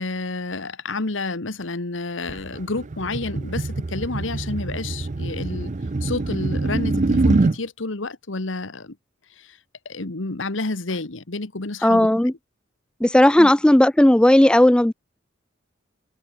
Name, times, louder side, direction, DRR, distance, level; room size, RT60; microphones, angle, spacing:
voice 1, 0.0-5.7 6.0-9.0 9.4-9.6 9.8-12.1 13.4-13.5, left 3 dB, 80° left, 1.5 m, -30 dB
sound 1, 2.3-7.6, right 2 dB, 40° right, 0.6 m, -24 dB
voice 2, 11.8-12.3 13.0-14.9, left 1 dB, 5° left, 0.3 m, -15 dB
head